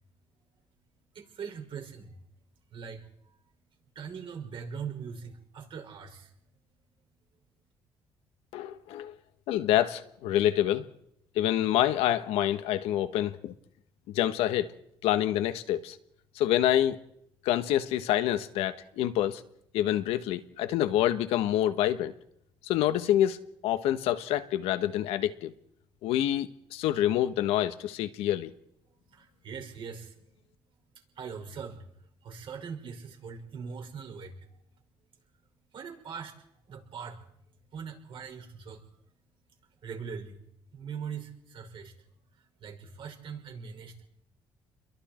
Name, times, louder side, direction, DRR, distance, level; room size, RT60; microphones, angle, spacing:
voice 1, 1.1-2.2 2.7-3.0 3.9-6.3 29.1-30.2 31.1-31.9 32.2-34.6 35.7-36.3 36.7-37.2 37.7-38.8 39.8-40.4 40.7-41.9 42.6-44.1, right 6 dB, 60° right, 5.8 m, -41 dB
voice 2, 8.5-9.2 9.5-10.9 11.3-13.5 14.1-14.7 15.0-16.0 16.3-17.0 17.4-19.4 19.7-22.1 22.6-25.5 26.0-28.5, left 12 dB, 90° left, 1.5 m, -27 dB
29.0 x 22.5 x 4.5 m
cardioid pair, 85°, 10 cm